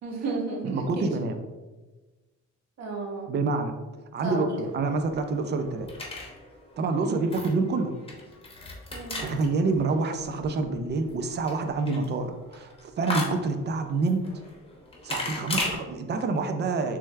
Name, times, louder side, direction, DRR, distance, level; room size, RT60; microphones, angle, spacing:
voice 1, 0.0-1.1 2.8-3.3 4.2-4.4 6.9-7.3 8.9-9.2, right 3 dB, 55° right, 0 dB, 0.9 m, -33 dB
voice 2, 0.6-1.4 3.3-3.8 4.1-4.5 4.7-5.9 6.8-7.9 9.2-14.2 15.0-17.0, right 3 dB, 35° right, 7 dB, 0.4 m, -27 dB
sound 1, 4.5-15.8, left 2 dB, 20° left, 0.8 m, -38 dB
3.3 x 3.1 x 3.3 m, 1.2 s
cardioid pair, 145°, 31 cm